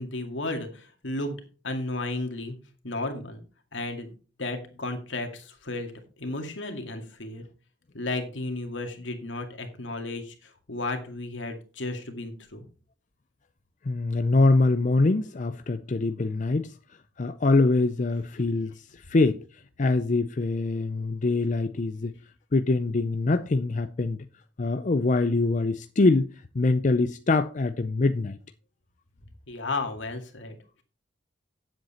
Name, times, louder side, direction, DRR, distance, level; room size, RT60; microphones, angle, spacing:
voice 1, 0.0-1.4 1.6-2.5 2.8-3.4 3.7-4.1 4.4-5.9 6.2-7.4 7.9-12.7 29.5-30.6, left 2 dB, 75° left, 2.2 m, -33 dB
voice 2, 13.9-16.7 17.2-19.4 19.8-22.1 22.5-24.2 24.6-26.3 26.5-28.4, left 3 dB, 40° left, 0.5 m, -24 dB
9.8 x 7.8 x 4.3 m
head